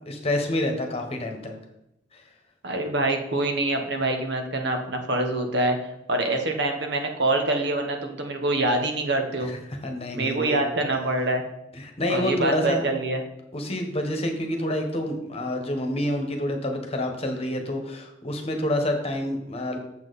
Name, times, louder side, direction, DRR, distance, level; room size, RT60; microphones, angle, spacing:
voice 1, 0.1-1.5 9.8-10.6 11.8-12.8 13.5-19.8, left 1 dB, 35° left, 4 dB, 1.3 m, -28 dB
voice 2, 2.6-9.5 10.1-11.4 12.1-13.2, right 2 dB, 65° right, 4 dB, 1.3 m, -25 dB
7.3 x 7.2 x 4.2 m, 0.84 s
head